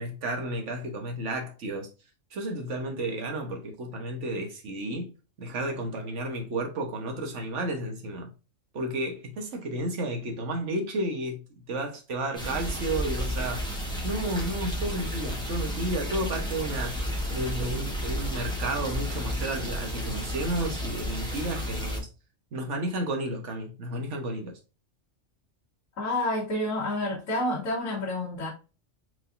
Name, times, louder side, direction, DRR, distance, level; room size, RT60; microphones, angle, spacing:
voice 1, 0.0-1.9 2.3-5.1 5.4-8.3 8.7-11.4 11.7-13.7 14.0-17.0 17.3-22.1 22.5-24.6, right 1 dB, 65° right, 1.4 m, -32 dB
sound 1, 12.3-22.0, equal, 5° left, 1.2 m, -32 dB
voice 2, 26.0-28.5, left 1 dB, 90° left, 1.8 m, -29 dB
4.7 x 3.7 x 2.5 m
omnidirectional pair, 1.3 m